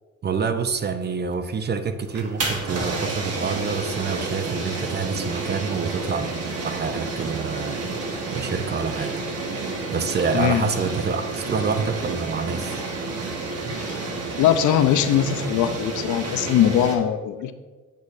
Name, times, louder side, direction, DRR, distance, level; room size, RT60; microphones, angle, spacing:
voice 1, 0.2-6.3 6.6-7.9 8.3-9.2 9.9-12.9 13.6-13.7, right 5 dB, 35° right, 9 dB, 0.5 m, -27 dB
sound 1, 2.1-17.0, right 3 dB, 55° right, 1.3 m, -30 dB
voice 2, 13.7-14.0 14.4-17.5, left 10 dB, 75° left, 10 dB, 0.5 m, -21 dB
8.4 x 6.3 x 2.6 m, 1.3 s
cardioid pair, 90°, 30 cm